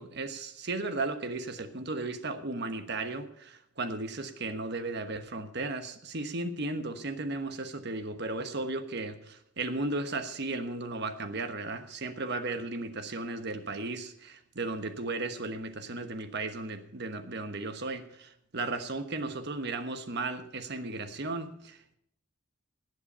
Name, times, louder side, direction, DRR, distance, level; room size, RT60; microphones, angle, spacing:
voice 1, 0.0-21.9, right 2 dB, 55° right, 8 dB, 1.2 m, -35 dB
18.5 x 8.0 x 5.5 m, 0.69 s
head